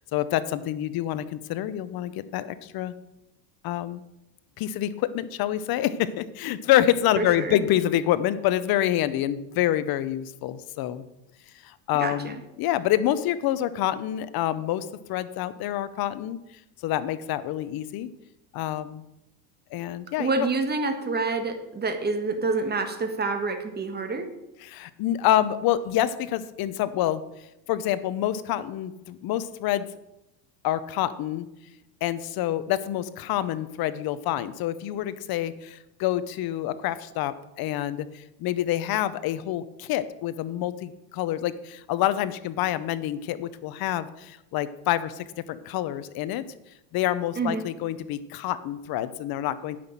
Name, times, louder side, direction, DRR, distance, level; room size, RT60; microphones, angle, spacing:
voice 1, 0.1-2.9 3.6-4.0 4.6-11.0 11.6-16.4 16.8-18.1 18.5-19.0 19.7-20.3 24.6-27.2 27.7-29.9 30.6-31.5 32.0-46.4 46.9-49.8, left 12 dB, 50° left, 14 dB, 0.9 m, -27 dB
voice 2, 7.2-7.6 12.0-12.3 20.2-24.3 47.4-47.6, right 3 dB, 20° right, 6 dB, 1.6 m, -27 dB
9.4 x 6.0 x 7.5 m, 0.89 s
supercardioid pair, 110°, 48 cm